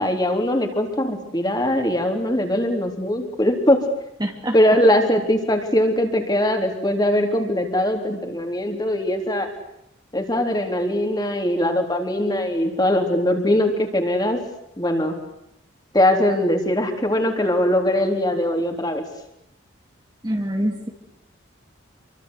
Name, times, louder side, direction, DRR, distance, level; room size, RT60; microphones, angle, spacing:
voice 1, 0.0-3.8 4.5-9.5 10.1-14.4 14.8-15.1 15.9-19.0, left 1 dB, 20° left, 4 dB, 3.7 m, -21 dB
voice 2, 4.2-4.6 20.2-20.9, equal, 20° right, 3 dB, 2.4 m, -25 dB
28.5 x 24.5 x 8.2 m, 0.78 s
head